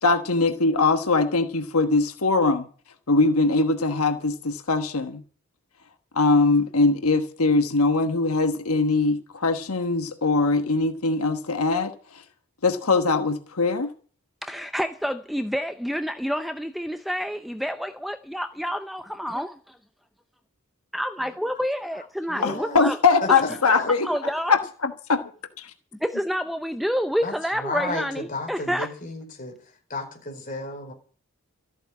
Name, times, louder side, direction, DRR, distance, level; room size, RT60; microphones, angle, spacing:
voice 1, 0.0-2.7 3.1-5.2 6.1-12.2 12.6-13.9 22.4-24.9, left 3 dB, 80° left, 1.2 m, -22 dB
voice 2, 14.4-19.8 20.9-23.0 23.3-23.4 24.0-24.6 26.0-28.9, equal, ahead, 0.6 m, -28 dB
voice 3, 22.3-22.8 23.2-23.9 27.2-29.6 29.9-30.9, left 2 dB, 35° left, 4.6 m, -33 dB
14.0 x 8.0 x 9.5 m
head